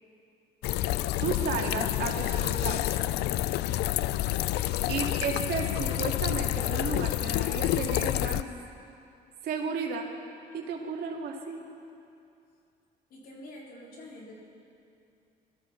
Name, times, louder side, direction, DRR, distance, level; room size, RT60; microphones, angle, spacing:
sound 1, 0.6-8.4, left 15 dB, 80° left, 0.4 m, -28 dB
voice 1, 1.2-2.9 4.9-8.5 9.4-10.1 10.5-11.6, right 5 dB, 70° right, 0 dB, 2.3 m, -33 dB
voice 2, 13.1-14.3, left 1 dB, 65° left, -4 dB, 4.4 m, -46 dB
22.5 x 13.5 x 4.6 m, 2.6 s
cardioid pair, 110°, 17 cm